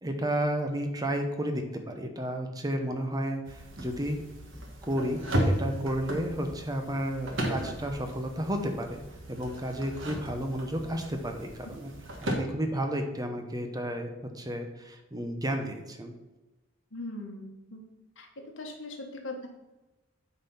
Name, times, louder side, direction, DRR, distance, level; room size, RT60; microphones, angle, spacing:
voice 1, 0.0-4.2 4.8-5.2 5.5-9.0 9.3-11.9 12.4-14.1 14.3-16.1, right 1 dB, 20° right, 5 dB, 0.9 m, -32 dB
sound 1, 3.4-12.3, right 1 dB, 75° right, 1.6 m, -35 dB
voice 2, 16.9-17.8 18.2-18.3 18.6-19.5, left 2 dB, 75° left, 2 dB, 1.5 m, -40 dB
8.8 x 4.1 x 5.6 m, 1.1 s
head